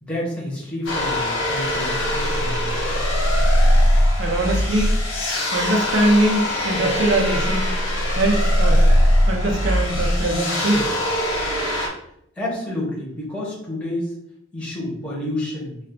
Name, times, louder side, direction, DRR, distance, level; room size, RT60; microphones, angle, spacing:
voice 1, 0.0-3.0 12.3-14.1 14.5-15.8, left 1 dB, 5° left, -6 dB, 0.9 m, -29 dB
sound 1, 0.9-11.9, equal, 80° left, 0.7 m, -20 dB
voice 2, 4.2-5.0 5.5-7.7 8.1-8.9 9.2-10.9, right 1 dB, 70° right, 1 dB, 0.6 m, -22 dB
2.4 x 2.3 x 3.5 m, 0.74 s
head